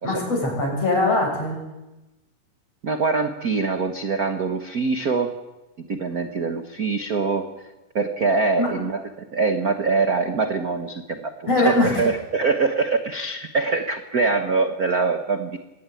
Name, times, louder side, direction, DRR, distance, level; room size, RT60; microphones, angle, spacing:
voice 1, 0.0-1.6 8.6-8.7 11.5-12.0, left 2 dB, 50° left, 1 dB, 8.1 m, -21 dB
voice 2, 2.8-5.3 5.9-7.5 7.9-15.6, right 4 dB, 65° right, 7 dB, 0.9 m, -24 dB
23.0 x 18.0 x 9.2 m, 1.0 s
omnidirectional pair, 3.8 m